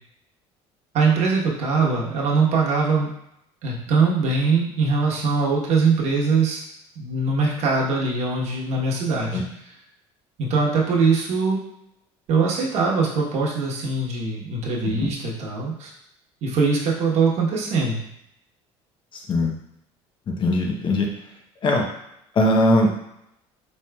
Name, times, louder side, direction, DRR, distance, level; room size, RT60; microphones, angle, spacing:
voice 1, 0.9-3.1 3.6-6.6 7.0-9.4 10.4-11.6 12.3-15.9 16.4-18.0, right 4 dB, 60° right, -3 dB, 1.1 m, -22 dB
voice 2, 20.4-21.1 21.6-21.8 22.4-22.9, left 1 dB, 40° left, 1 dB, 0.9 m, -19 dB
4.5 x 3.1 x 2.3 m, 0.79 s
supercardioid pair, 105°, 13 cm